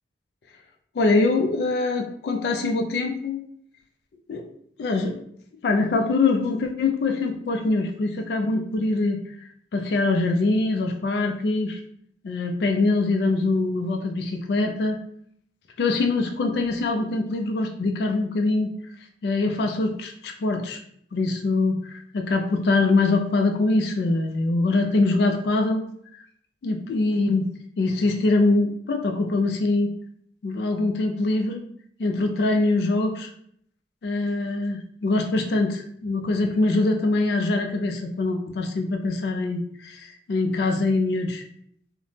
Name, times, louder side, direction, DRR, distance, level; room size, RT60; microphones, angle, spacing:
voice 1, 0.9-3.4 4.3-4.4 4.8-5.2 5.6-9.2 9.7-11.8 12.2-15.0 15.8-18.7 19.2-20.8 21.1-25.8 26.6-27.5 27.8-29.9 30.4-31.6 32.0-33.3 34.0-41.4, left 3 dB, 65° left, 3 dB, 0.3 m, -23 dB
2.8 x 2.1 x 3.1 m, 0.68 s
head